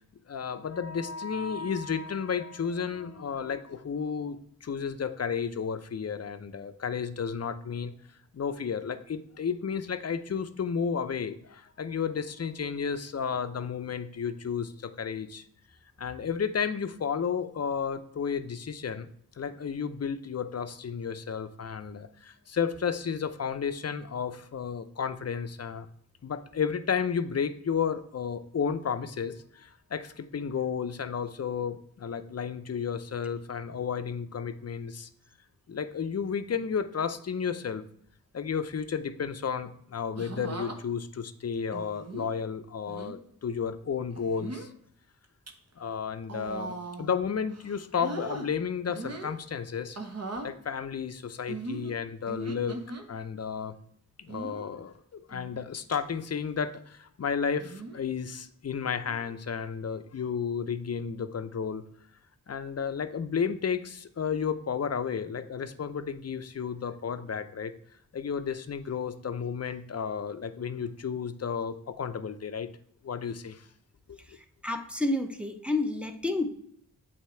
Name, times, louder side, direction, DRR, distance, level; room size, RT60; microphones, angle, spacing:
voice 1, 0.3-7.9 8.3-15.4 16.0-19.1 19.4-25.9 26.2-35.1 35.7-37.8 38.3-44.7 45.8-50.0 50.4-52.7 53.1-53.7 54.2-61.8 62.5-67.7 68.1-72.7 73.0-73.7 74.1-74.2, left 6 dB, 40° left, 11 dB, 0.6 m, -32 dB
sound 1, 40.2-40.8 41.7-42.3 42.9-43.1 44.1-44.7 45.2-45.5 46.2-47.2 47.5-48.5 48.9-49.4 49.9-50.5 51.5-53.0 54.3-54.7 55.3-55.6 55.9-56.0 57.6-58.0 59.1-59.4, right 2 dB, 40° right, 1.0 m, -39 dB
voice 2, 74.6-76.5, left 2 dB, 5° right, 4 dB, 0.8 m, -29 dB
8.2 x 2.8 x 4.3 m, 0.66 s
cardioid pair, 40°, 37 cm